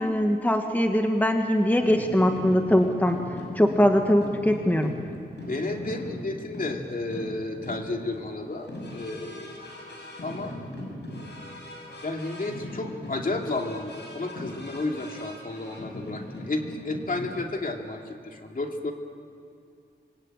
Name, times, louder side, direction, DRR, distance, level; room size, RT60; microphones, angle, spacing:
voice 1, 0.0-3.2 3.5-4.9, equal, 10° left, 4 dB, 1.6 m, -22 dB
sound 1, 1.8-17.5, left 1 dB, 70° left, 6.9 m, -39 dB
voice 2, 5.5-10.0 10.2-10.6 12.0-18.9, left 2 dB, 50° left, 2 dB, 2.8 m, -32 dB
26.5 x 22.5 x 9.0 m, 2.4 s
wide cardioid pair, 110°, 19 cm